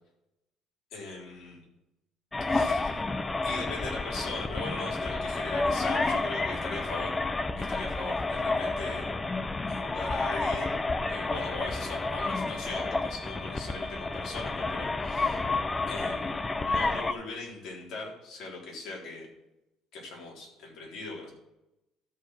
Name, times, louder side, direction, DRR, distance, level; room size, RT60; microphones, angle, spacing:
voice 1, 0.9-1.6 2.4-3.0 3.4-7.2 7.6-9.1 9.7-10.8 11.1-15.4 15.9-19.3 19.9-21.3, left 3 dB, 60° left, -2 dB, 3.8 m, -40 dB
sound 1, 2.3-17.1, left 3 dB, 15° left, 0.5 m, -30 dB
12.5 x 4.9 x 6.2 m, 0.93 s
cardioid pair, 145°, 0 cm